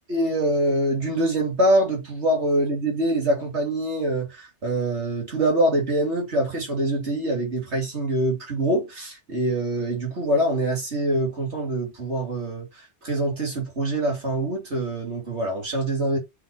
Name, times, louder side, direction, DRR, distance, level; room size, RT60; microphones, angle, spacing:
voice 1, 0.1-12.7 13.0-16.2, right 1 dB, 65° right, 2.9 m, -24 dB
5.9 x 4.2 x 4.8 m
omnidirectional pair, 1.2 m